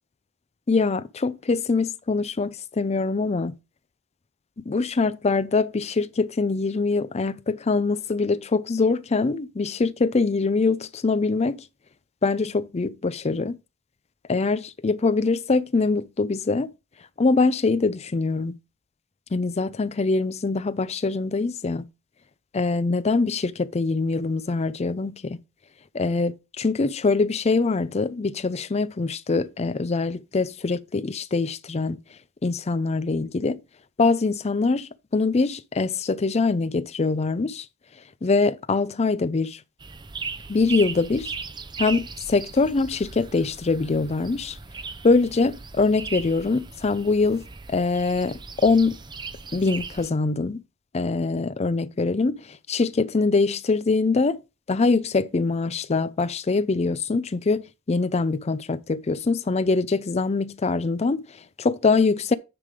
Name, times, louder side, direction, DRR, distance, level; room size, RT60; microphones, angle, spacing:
voice 1, 0.7-3.5 4.7-11.7 12.2-13.6 14.3-16.7 17.2-18.5 19.3-21.8 22.5-25.4 25.9-32.0 32.4-33.6 34.0-37.7 38.2-39.6 40.5-41.3 41.8-44.6 45.0-49.0 49.5-50.6 50.9-54.4 54.7-62.3, left 3 dB, 30° left, 0.4 m, -23 dB
sound 1, 39.8-50.1, right 4 dB, 20° right, 0.5 m, -38 dB
9.8 x 3.6 x 5.0 m
head